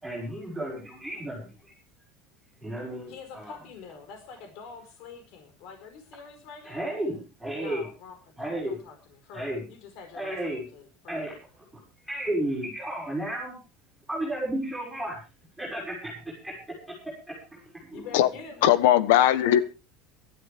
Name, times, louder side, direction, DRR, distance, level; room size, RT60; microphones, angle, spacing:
voice 1, 0.0-1.7 2.6-3.6 6.6-7.9 8.4-8.8 9.3-9.6 10.1-10.6 11.1-11.3 11.7-13.6 14.1-15.2 15.6-18.1, right 1 dB, ahead, -4 dB, 6.0 m, -33 dB
voice 2, 3.1-6.9 7.5-11.3 17.9-18.7, left 5 dB, 50° left, 6 dB, 4.5 m, -46 dB
voice 3, 18.6-19.6, left 12 dB, 85° left, 14 dB, 1.3 m, -19 dB
19.5 x 12.5 x 3.5 m, 0.33 s
cardioid pair, 175°, 0 cm